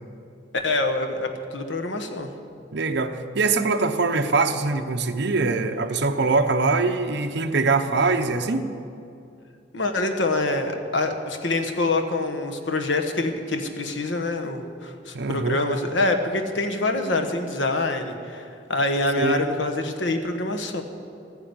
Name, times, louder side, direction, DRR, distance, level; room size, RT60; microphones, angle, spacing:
voice 1, 0.6-2.3 9.7-20.8, left 2 dB, 75° left, 6 dB, 1.3 m, -25 dB
voice 2, 2.7-8.7 15.1-15.6 19.2-19.5, right 3 dB, 65° right, 6 dB, 0.8 m, -23 dB
14.0 x 9.8 x 8.1 m, 2.5 s
head